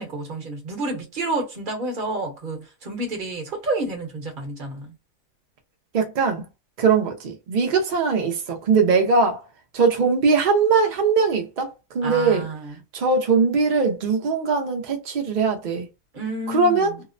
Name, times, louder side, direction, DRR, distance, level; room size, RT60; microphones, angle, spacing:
voice 1, 0.0-4.9 12.0-12.7 16.1-17.0, right 2 dB, 40° right, 0.9 m, -30 dB
voice 2, 5.9-6.4 6.8-9.4 9.7-12.5 12.9-15.9 16.5-17.0, right 4 dB, 75° right, 0.4 m, -21 dB
2.8 x 2.0 x 2.4 m
omnidirectional pair, 1.5 m